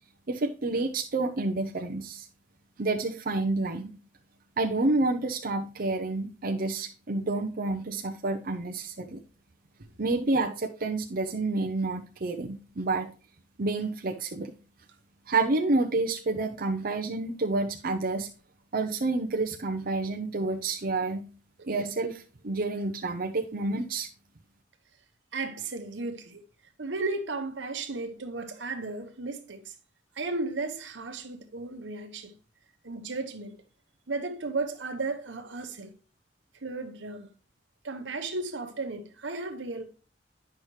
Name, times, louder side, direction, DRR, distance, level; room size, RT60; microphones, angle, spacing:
voice 1, 0.3-2.3 2.8-3.9 4.6-9.2 10.0-13.1 13.6-14.5 15.3-18.3 18.7-21.3 21.7-24.1, right 3 dB, 55° right, 0.7 m, -29 dB
voice 2, 25.3-26.5 26.8-29.7 30.1-32.3 32.8-33.6 34.1-35.9 36.6-37.3 37.8-39.8, right 3 dB, 85° right, 1.2 m, -34 dB
9.5 x 5.7 x 3.2 m
head